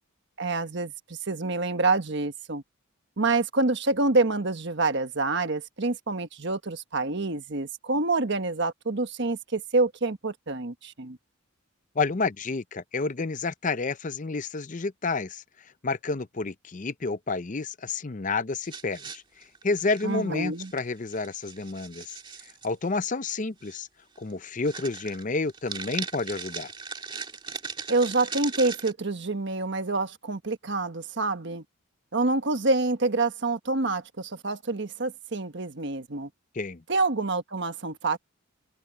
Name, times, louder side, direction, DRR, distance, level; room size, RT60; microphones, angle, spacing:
voice 1, 0.4-2.6 3.2-11.2 20.0-20.7 27.9-31.6 32.1-36.3 36.9-38.2, right 3 dB, 55° right, 1.3 m, -27 dB
voice 2, 12.0-15.4 15.8-19.2 19.6-22.1 22.6-23.9 24.2-26.7 36.5-36.8, left 3 dB, 35° left, 0.6 m, -30 dB
sound 1, 18.6-20.2 20.6-20.8 21.1-22.7 23.6-23.8 24.2-24.3 24.7-28.9, right 5 dB, 25° right, 2.1 m, -38 dB
open air
head